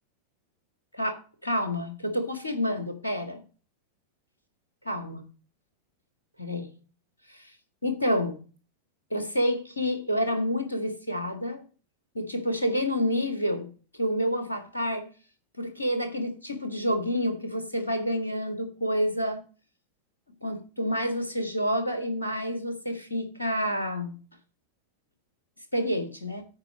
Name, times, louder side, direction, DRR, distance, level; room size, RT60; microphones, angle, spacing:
voice 1, 0.9-3.4 4.8-5.3 6.4-6.7 7.3-7.5 7.8-8.4 9.1-11.6 12.1-15.1 15.6-19.4 20.4-24.2 25.7-26.4, equal, 80° left, 7 dB, 1.8 m, -29 dB
8.8 x 5.1 x 7.2 m, 0.37 s
figure-of-eight pair, 90°, 0 cm